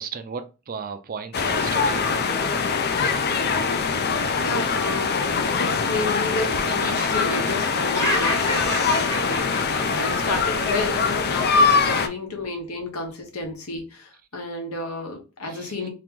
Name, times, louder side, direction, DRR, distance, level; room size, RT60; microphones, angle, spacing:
voice 1, 0.0-2.1 15.4-15.9, right 6 dB, 40° right, 0.4 m, -35 dB
Kids at River, 1.3-12.1, left 5 dB, 45° left, 0.4 m, -23 dB
voice 2, 4.4-5.2 5.6-15.9, left 2 dB, 75° left, 1.1 m, -31 dB
Laughter, 6.6-11.0, left 1 dB, 15° left, 0.8 m, -30 dB
2.9 x 2.9 x 3.6 m
head